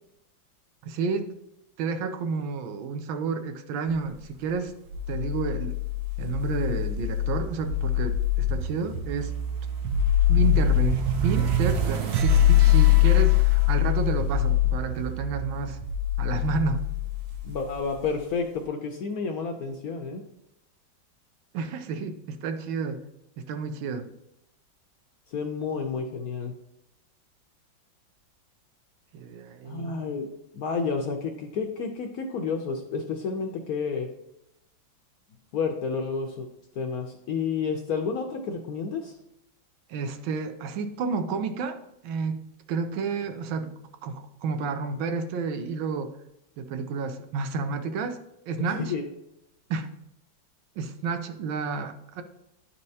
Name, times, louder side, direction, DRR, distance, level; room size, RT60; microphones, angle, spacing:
voice 1, 0.8-1.3 1.8-4.7 5.1-5.8 6.2-9.4 10.3-15.8 16.2-16.9 21.5-23.0 23.4-24.1 29.1-30.0 39.9-46.1 46.6-48.2 48.5-48.9 49.7-49.9 50.8-52.2, right 5 dB, 90° right, 8 dB, 1.5 m, -31 dB
sound 1, 4.9-18.1, left 8 dB, 65° right, 1.1 m, -23 dB
voice 2, 17.4-20.2 25.3-26.5 29.6-30.3 30.5-34.1 35.5-36.5 36.7-39.1 48.6-49.0, left 5 dB, 70° left, 4 dB, 0.9 m, -30 dB
11.0 x 4.3 x 2.7 m, 0.85 s
omnidirectional pair, 2.1 m